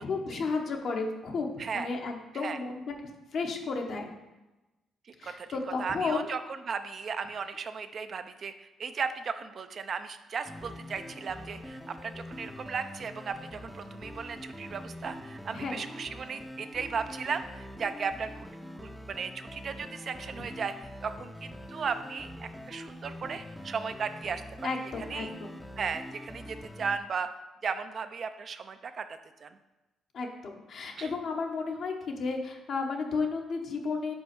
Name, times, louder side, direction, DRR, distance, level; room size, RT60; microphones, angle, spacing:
voice 1, 0.0-2.9 3.3-4.1 5.2-6.3 15.5-15.8 24.6-25.6 30.1-34.1, left 4 dB, 60° left, 2 dB, 1.0 m, -33 dB
voice 2, 5.8-6.4 6.7-18.5 18.8-24.7 25.1-25.3 25.8-27.3 27.6-29.1 29.4-29.6 31.0-31.1, right 5 dB, 50° right, 9 dB, 0.4 m, -36 dB
sound 1, 10.5-27.0, left 1 dB, 5° left, 0.6 m, -44 dB
5.3 x 4.3 x 6.0 m, 1.1 s
cardioid pair, 90°, 0 cm